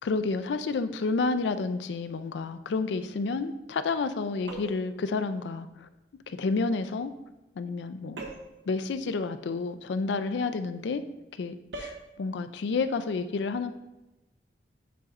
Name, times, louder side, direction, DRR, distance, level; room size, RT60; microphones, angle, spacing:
voice 1, 0.0-5.9 6.3-7.1 7.6-8.2 8.7-11.0 11.3-13.7, left 4 dB, 90° left, 11 dB, 0.4 m, -30 dB
sound 1, 4.5-5.0 8.2-8.6 11.7-12.1, right 2 dB, 85° right, 0.8 m, -40 dB
9.2 x 4.1 x 2.5 m, 1.0 s
head